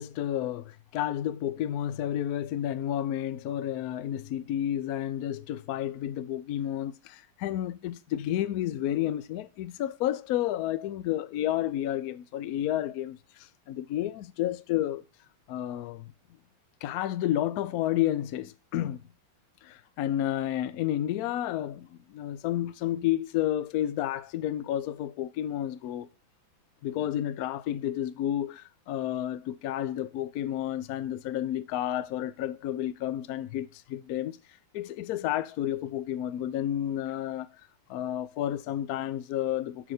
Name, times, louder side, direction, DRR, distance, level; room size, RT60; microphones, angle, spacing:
voice 1, 0.0-15.0 15.5-16.1 16.8-19.1 19.6-26.1 26.8-34.4 34.7-37.5 37.9-39.9, left 12 dB, 80° left, 0.8 m, -31 dB
7.4 x 6.8 x 4.2 m
omnidirectional pair, 2.2 m